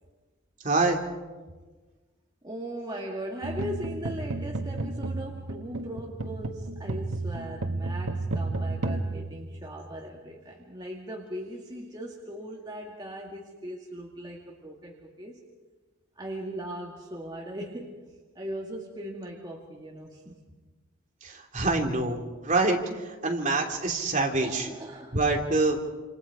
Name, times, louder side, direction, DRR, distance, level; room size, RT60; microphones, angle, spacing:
voice 1, 0.6-1.0 21.2-24.7 25.1-25.8, right 3 dB, 35° right, 1 dB, 3.0 m, -26 dB
voice 2, 2.4-15.4 16.2-18.0 18.4-20.4 24.4-25.4, right 1 dB, 20° right, -2 dB, 2.1 m, -39 dB
sound 1, 3.4-10.1, right 2 dB, 90° right, 1.5 m, -33 dB
28.5 x 27.5 x 5.0 m, 1.3 s
head